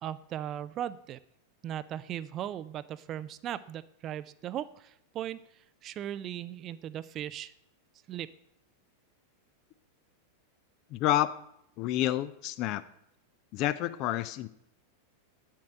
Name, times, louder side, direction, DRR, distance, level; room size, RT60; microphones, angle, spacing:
voice 1, 0.0-1.2 1.6-7.5 8.1-8.3, right 11 dB, 30° right, 16 dB, 0.3 m, -38 dB
voice 2, 10.9-11.3 11.8-12.8 13.5-14.5, left 14 dB, 40° left, 15 dB, 0.4 m, -29 dB
8.7 x 7.3 x 5.3 m, 0.76 s
figure-of-eight pair, 90°, 0 cm